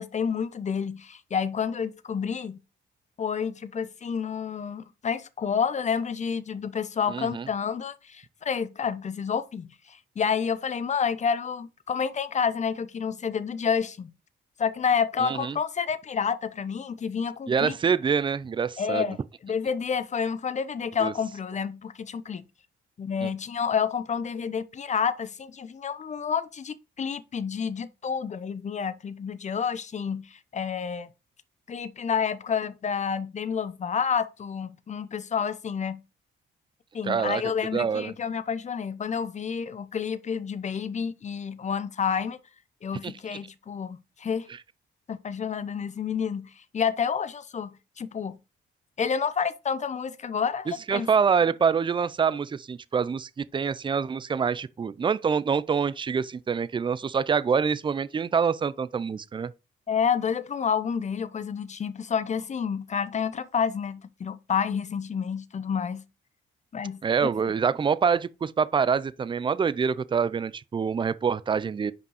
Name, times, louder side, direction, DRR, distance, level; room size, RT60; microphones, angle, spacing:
voice 1, 0.0-2.6 3.2-14.1 14.6-17.8 18.8-22.4 23.0-31.1 31.7-36.0 36.9-42.4 42.8-44.5 45.1-48.4 49.0-51.1 59.9-66.0 66.7-67.3, left 6 dB, 35° left, 0.7 m, -29 dB
voice 2, 7.1-7.5 15.2-15.6 17.5-19.1 21.0-21.1 23.2-23.3 37.0-37.4 37.7-38.1 43.0-43.1 50.9-59.5 67.0-71.9, right 6 dB, 25° right, 0.4 m, -26 dB
5.3 x 5.2 x 4.8 m
cardioid pair, 90°, 20 cm